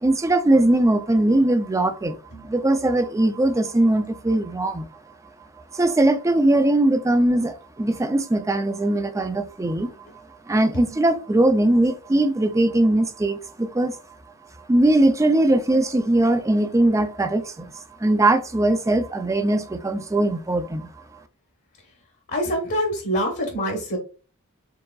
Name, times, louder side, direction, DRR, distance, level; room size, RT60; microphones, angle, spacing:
voice 1, 0.0-2.2 2.4-4.9 5.7-9.9 10.5-14.0 14.7-20.9, right 1 dB, 15° right, 0.4 m, -20 dB
voice 2, 22.3-24.0, equal, 50° left, 1.1 m, -25 dB
4.6 x 3.7 x 2.3 m
head